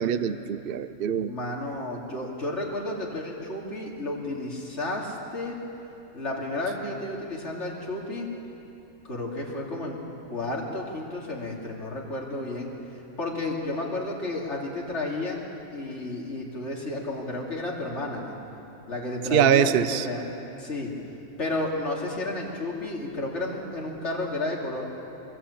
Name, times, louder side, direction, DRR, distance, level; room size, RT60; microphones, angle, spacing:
voice 1, 0.0-1.3 19.3-20.0, right 9 dB, 50° right, 13 dB, 0.8 m, -23 dB
voice 2, 1.3-5.6 6.1-8.3 9.0-10.0 10.3-12.7 13.2-15.4 15.7-18.4 18.9-20.9 21.4-24.8, left 2 dB, 50° left, -3 dB, 3.5 m, -32 dB
23.5 x 21.0 x 8.7 m, 2.9 s
omnidirectional pair, 1.5 m